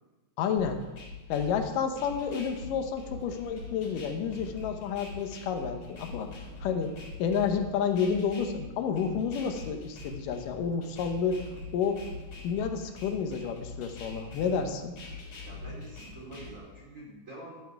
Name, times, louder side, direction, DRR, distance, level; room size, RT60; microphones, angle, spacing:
voice 1, 0.4-0.8 1.3-6.3 6.6-6.9 7.2-11.4 11.7-12.0 12.4-14.9, left 6 dB, 85° left, 6 dB, 2.6 m, -30 dB
sound 1, 0.6-16.6, left 2 dB, 55° left, 5.8 m, -43 dB
voice 2, 15.4-17.6, right 1 dB, 25° right, -4 dB, 3.2 m, -46 dB
12.5 x 9.3 x 4.7 m, 1.2 s
omnidirectional pair, 3.7 m